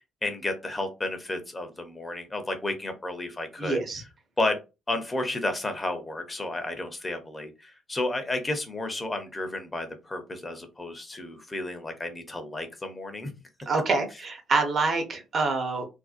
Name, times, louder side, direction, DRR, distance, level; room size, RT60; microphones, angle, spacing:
voice 1, 0.2-3.8 4.4-4.6 4.9-13.3, left 2 dB, 20° left, 7 dB, 0.6 m, -32 dB
voice 2, 3.6-4.0 13.7-15.9, right 3 dB, 50° right, 4 dB, 0.8 m, -26 dB
2.5 x 2.1 x 2.4 m, 0.27 s
cardioid pair, 85°, 0 cm